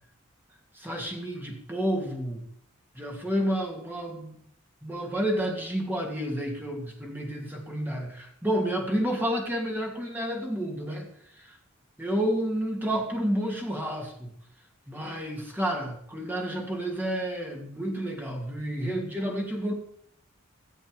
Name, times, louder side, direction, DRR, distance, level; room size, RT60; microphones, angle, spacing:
voice 1, 0.7-2.4 2.9-4.4 4.8-11.1 11.4-11.6 12.0-14.3 14.9-19.7, equal, 10° right, 1 dB, 2.8 m, -30 dB
14.5 x 7.9 x 6.9 m, 0.66 s
head